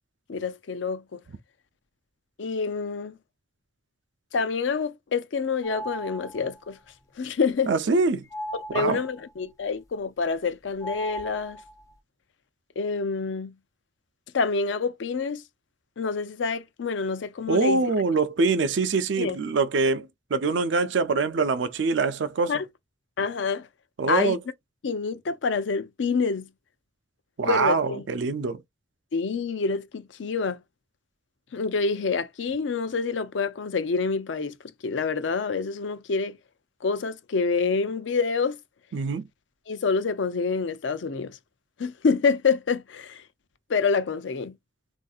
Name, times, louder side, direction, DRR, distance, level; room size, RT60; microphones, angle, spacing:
voice 1, 0.3-1.2 2.4-3.2 4.3-6.8 7.2-7.7 8.5-11.6 12.8-13.5 14.3-15.4 16.0-17.8 19.2-19.4 22.5-22.7 23.2-23.7 24.1-24.4 24.8-26.5 27.4-28.0 29.1-30.6 31.5-34.5 34.8-36.4 36.8-38.6 39.7-41.4 41.8-43.2 43.7-44.5, left 4 dB, 80° left, 0.5 m, -27 dB
sound 1, 5.6-6.6 8.3-9.3 10.8-11.9, equal, 20° left, 0.4 m, -37 dB
voice 2, 7.7-8.2 8.7-9.0 17.5-22.5 24.0-24.4 27.4-28.6 38.9-39.3, right 4 dB, 75° right, 0.5 m, -24 dB
3.4 x 2.6 x 2.3 m
head